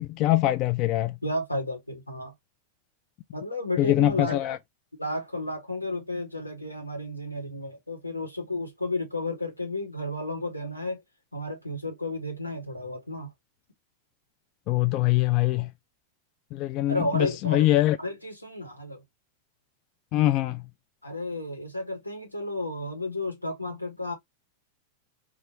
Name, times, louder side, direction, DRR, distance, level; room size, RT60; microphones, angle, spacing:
voice 1, 0.0-1.1 3.8-4.6 14.7-15.7 16.5-18.0 20.1-20.6, left 15 dB, 40° left, 0.3 m, -23 dB
voice 2, 1.2-2.3 3.3-4.4 5.0-11.0 11.3-13.3 16.9-17.7 18.0-19.0 21.0-24.1, left 1 dB, 85° left, 1.3 m, -32 dB
4.2 x 2.5 x 2.8 m
figure-of-eight pair, 90°, 0 cm